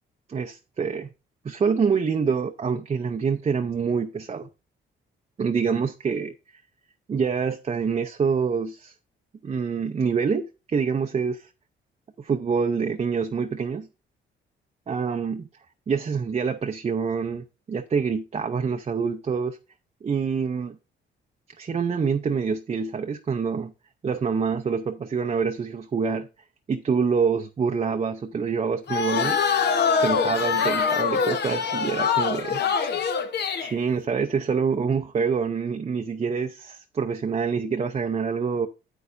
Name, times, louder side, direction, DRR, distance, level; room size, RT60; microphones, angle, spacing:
voice 1, 0.3-1.1 1.4-4.5 5.4-6.3 7.1-8.9 9.4-11.5 12.2-13.9 14.9-15.5 15.9-19.6 20.0-20.8 21.6-23.7 24.0-26.3 26.7-29.4 30.0-32.6 33.6-38.7, right 5 dB, 30° right, 0.6 m, -26 dB
sound 1, 28.9-33.7, left 6 dB, 60° left, 1.0 m, -24 dB
9.5 x 8.1 x 2.5 m
cardioid pair, 90°, 20 cm